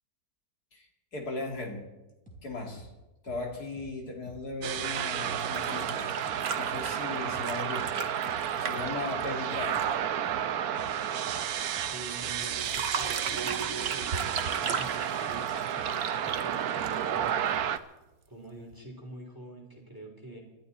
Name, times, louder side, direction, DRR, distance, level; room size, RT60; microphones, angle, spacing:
voice 1, 1.1-1.9 2.4-2.9 3.2-6.1 6.5-8.0 8.6-9.8, left 3 dB, 75° left, 1 dB, 3.1 m, -37 dB
sound 1, 2.3-2.4 2.8-2.9 3.3-3.4 3.8-3.9 4.3-4.4 4.8-4.9 5.3-5.9 6.3-6.4 6.8-6.9 7.3-7.4 7.8-7.9 8.3-8.4 8.8-9.9 10.3-10.4 10.8-10.9 11.3-11.4 11.8-11.9 12.3-12.4 12.8-12.9 13.3-13.9 14.3-14.4 14.8-14.9 15.3-15.4 15.8-15.9 16.3-16.4 16.8-17.6, right 1 dB, 5° left, 3.8 m, -49 dB
sound 2, 4.6-17.8, right 9 dB, 70° right, 1.2 m, -31 dB
sound 3, 5.3-10.0 12.4-17.3 18.7-18.8, right 5 dB, 45° right, 1.1 m, -37 dB
voice 2, 11.9-17.5 18.3-20.4, right 2 dB, 10° right, 1 dB, 3.1 m, -46 dB
27.5 x 12.0 x 4.1 m, 1.0 s
omnidirectional pair, 1.7 m